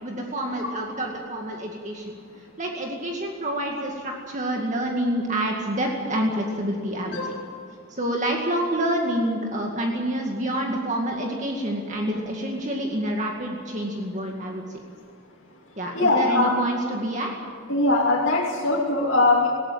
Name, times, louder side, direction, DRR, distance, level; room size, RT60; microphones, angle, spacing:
voice 1, 0.0-7.3 7.9-14.6 15.8-17.3, right 1 dB, 35° right, 0 dB, 2.2 m, -27 dB
voice 2, 15.9-16.5 17.7-19.5, left 2 dB, 60° left, -4 dB, 2.8 m, -21 dB
19.5 x 17.5 x 8.8 m, 2.2 s
head